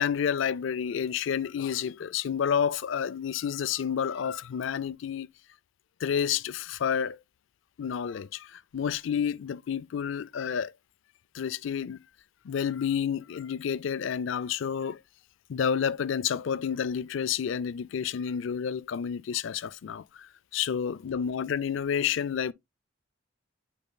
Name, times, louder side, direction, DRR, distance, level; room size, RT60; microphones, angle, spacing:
voice 1, 0.0-5.3 6.0-7.2 7.8-10.7 11.3-12.0 12.4-15.0 15.5-22.5, left 7 dB, 70° left, 0.4 m, -30 dB
8.2 x 6.6 x 2.2 m
head